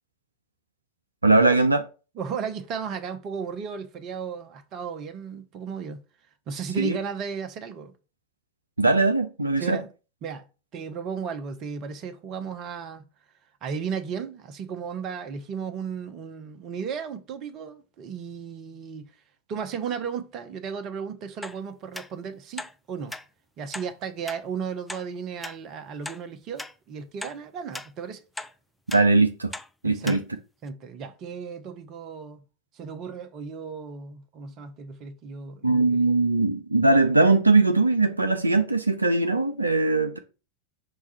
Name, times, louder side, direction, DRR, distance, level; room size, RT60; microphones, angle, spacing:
voice 1, 1.2-1.8 6.8-7.0 8.8-9.8 28.9-29.5 29.8-30.2 35.6-40.2, right 3 dB, 80° right, 0.4 m, -20 dB
voice 2, 2.1-6.0 6.5-7.9 9.6-9.9 10.2-10.5 10.7-13.0 13.6-19.1 19.5-23.2 23.6-28.2 29.8-30.2 30.6-32.4 32.7-36.0, right 6 dB, 35° right, 0.7 m, -35 dB
sound 1, 21.4-21.6 21.9-22.1 22.6-22.7 23.1-23.2 23.7-23.9 24.3-24.4 24.9-25.0 25.4-25.6 26.1-26.2 26.6-26.7 27.2-27.4 27.7-27.9 28.4-28.5 28.9-29.0 29.5-29.7 30.1-30.2 30.7-30.8, left 2 dB, 5° left, 0.3 m, -37 dB
5.4 x 2.4 x 4.2 m
figure-of-eight pair, 90°, 0 cm